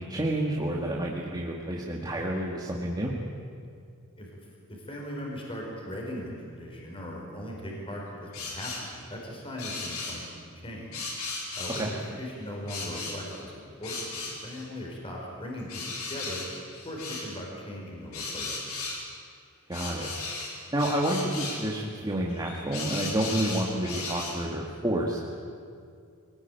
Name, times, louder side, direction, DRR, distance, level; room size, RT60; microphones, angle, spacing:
voice 1, 0.0-3.1 11.8-11.9 19.7-20.1 20.7-25.2, right 1 dB, 20° right, -3 dB, 2.2 m, -29 dB
voice 2, 4.7-11.0 11.5-16.4 16.8-18.7, equal, 25° left, -2 dB, 5.0 m, -39 dB
sound 1, 8.3-8.9 9.6-10.2 10.9-12.1 12.7-13.4 13.8-14.6 15.7-17.3 18.1-19.0 19.7-21.6 22.3-24.4, left 3 dB, 70° left, 5.3 m, -36 dB
23.5 x 19.5 x 9.4 m, 2.3 s
head